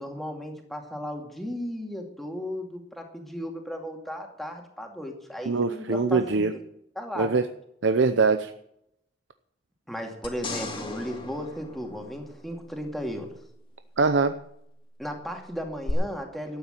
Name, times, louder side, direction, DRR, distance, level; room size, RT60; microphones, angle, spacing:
voice 1, 0.0-6.5 7.0-7.4 9.9-13.3 15.0-16.6, equal, ahead, 2 dB, 2.3 m, -35 dB
voice 2, 5.5-6.5 7.2-7.4 7.8-8.5 14.0-14.3, right 4 dB, 75° right, 9 dB, 0.7 m, -22 dB
sound 1, 10.2-12.7 15.9-16.0, left 2 dB, 25° left, 2.3 m, -37 dB
13.0 x 8.9 x 9.1 m, 0.75 s
head